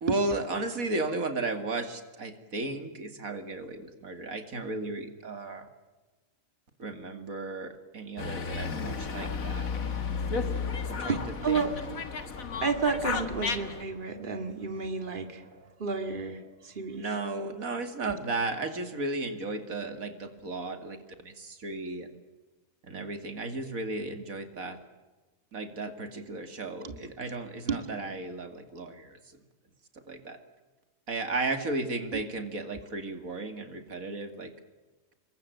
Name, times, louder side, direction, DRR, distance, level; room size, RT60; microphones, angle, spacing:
voice 1, 0.0-5.7 6.8-9.7 10.9-11.7 16.9-22.2 22.8-24.8 25.5-29.4 29.9-30.4 31.1-34.5, right 2 dB, 85° right, 8 dB, 2.8 m, -34 dB
Dog, 8.2-13.8, left 5 dB, 80° left, 2.3 m, -33 dB
voice 2, 11.1-12.0 12.6-17.3 18.0-18.1 26.8-27.0 27.7-27.8 32.1-32.2, right 5 dB, 35° right, 7 dB, 2.4 m, -32 dB
28.0 x 23.0 x 9.2 m, 1.2 s
omnidirectional pair, 1.4 m